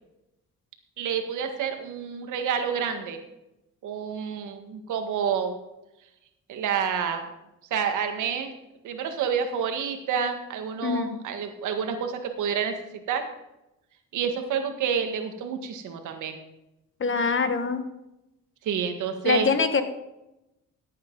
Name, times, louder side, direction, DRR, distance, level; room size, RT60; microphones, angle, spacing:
voice 1, 1.0-3.2 3.8-5.5 6.5-7.3 7.7-8.5 8.8-12.7 13.1-13.3 14.1-16.4 18.6-19.5, right 7 dB, 80° right, 6 dB, 1.7 m, -28 dB
voice 2, 10.8-11.2 17.0-17.8 19.2-19.8, left 5 dB, 40° left, 9 dB, 1.4 m, -24 dB
15.0 x 8.5 x 3.9 m, 0.91 s
cardioid pair, 90°, 30 cm